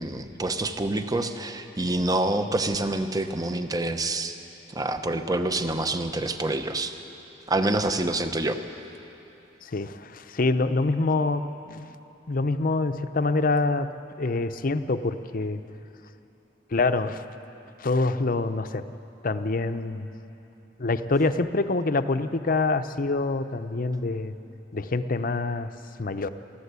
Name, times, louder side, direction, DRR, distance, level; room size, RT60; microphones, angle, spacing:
voice 1, 0.0-4.3 4.7-6.9 7.5-8.6, right 2 dB, 20° right, 7 dB, 0.9 m, -27 dB
voice 2, 9.6-11.9 12.3-13.9 14.2-15.6 16.7-17.2 17.8-18.8 19.2-20.1 20.8-24.3 24.7-25.7 26.0-26.3, left 3 dB, 50° left, 10 dB, 0.7 m, -26 dB
23.5 x 14.5 x 8.2 m, 2.9 s
head